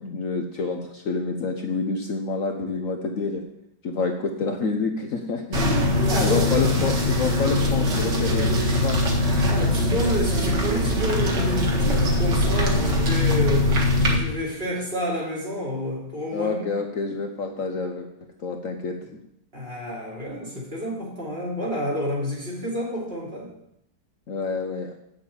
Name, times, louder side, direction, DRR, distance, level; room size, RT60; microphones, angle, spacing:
voice 1, 0.0-3.4 3.8-5.6 6.2-9.0 16.3-18.1 18.4-19.2 24.3-24.9, left 4 dB, 55° left, 4 dB, 1.1 m, -28 dB
sound 1, 5.5-14.2, left 1 dB, 80° right, 2.4 m, -22 dB
voice 2, 5.6-6.8 9.5-16.6 19.5-23.5, equal, 35° right, -4 dB, 3.3 m, -29 dB
8.0 x 6.8 x 8.3 m, 0.78 s
omnidirectional pair, 1.9 m